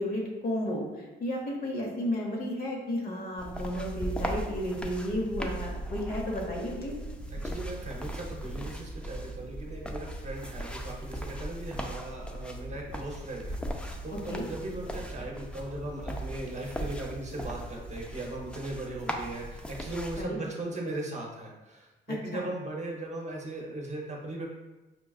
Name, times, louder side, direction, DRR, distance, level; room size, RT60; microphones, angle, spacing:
voice 1, 0.0-6.9 14.1-14.4 20.1-20.4 22.3-22.4, equal, 50° left, -1 dB, 1.0 m, -33 dB
sound 1, 3.4-20.3, equal, 5° left, 0.3 m, -38 dB
voice 2, 7.3-24.4, right 2 dB, 35° right, -1 dB, 0.8 m, -38 dB
5.3 x 2.3 x 2.4 m, 1.1 s
cardioid pair, 90°, 20 cm